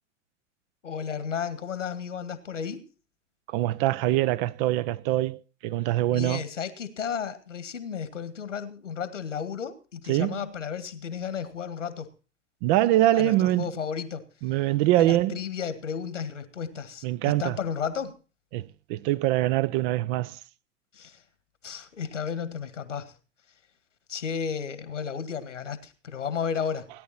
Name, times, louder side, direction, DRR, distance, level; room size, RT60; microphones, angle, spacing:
voice 1, 0.8-2.8 6.1-12.1 13.1-14.2 15.0-18.1 20.9-21.2 21.6-23.1 24.1-26.9, left 7 dB, 80° left, 1.9 m, -33 dB
voice 2, 3.5-6.4 10.1-10.4 12.6-13.7 14.4-15.4 17.0-17.6 18.5-20.4, right 15 dB, 45° right, 0.7 m, -24 dB
17.5 x 10.5 x 4.3 m
figure-of-eight pair, 90°, 36 cm